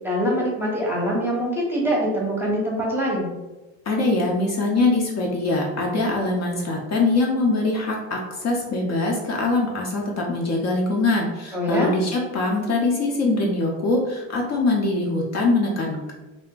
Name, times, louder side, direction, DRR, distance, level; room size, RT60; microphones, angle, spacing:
voice 1, 0.0-3.3 11.5-11.9, equal, 5° right, -4 dB, 0.7 m, -24 dB
voice 2, 3.9-16.1, left 2 dB, 45° left, 0 dB, 0.6 m, -23 dB
2.5 x 2.2 x 3.6 m, 1.1 s
cardioid pair, 115°, 39 cm